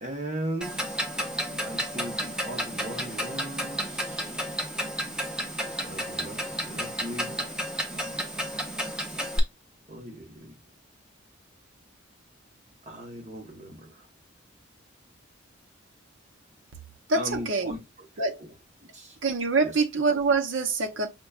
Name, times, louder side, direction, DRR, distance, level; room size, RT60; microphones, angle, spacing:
voice 1, 0.0-1.0 1.6-4.5 5.6-7.5 9.9-10.6 12.9-14.1 17.1-18.1 18.4-18.5 18.9-19.2 19.6-19.8, right 1 dB, 35° right, 1.0 m, -38 dB
Clock, 0.6-9.4, equal, 5° right, 0.6 m, -32 dB
voice 2, 17.1-17.7 18.2-18.4 19.2-21.1, right 3 dB, 75° right, 0.7 m, -25 dB
5.8 x 2.3 x 2.4 m
head